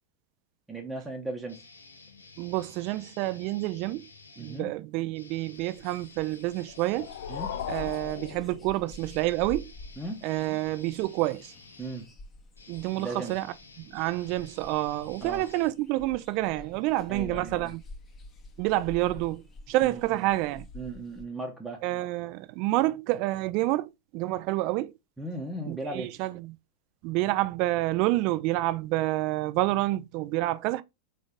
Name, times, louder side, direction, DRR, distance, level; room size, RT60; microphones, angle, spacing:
voice 1, 0.7-1.6 4.4-4.7 7.3-7.6 10.0-10.2 11.8-12.1 13.0-13.3 15.2-15.4 17.1-17.7 19.8-20.0 20.7-21.8 25.2-26.1, right 2 dB, 10° right, 0.9 m, -36 dB
sound 1, 1.5-4.6 5.1-16.3, left 3 dB, 80° left, 0.9 m, -52 dB
voice 2, 2.4-4.1 4.4-7.1 7.7-9.7 10.2-11.5 12.7-13.5 13.8-17.8 18.6-20.7 21.8-24.9 25.7-26.6 27.0-30.8, right 17 dB, 45° right, 0.4 m, -28 dB
sound 2, 5.5-21.2, left 1 dB, 20° left, 1.1 m, -49 dB
sound 3, 6.6-9.2, left 10 dB, 55° left, 0.4 m, -38 dB
4.0 x 3.3 x 3.7 m
figure-of-eight pair, 90°, 0 cm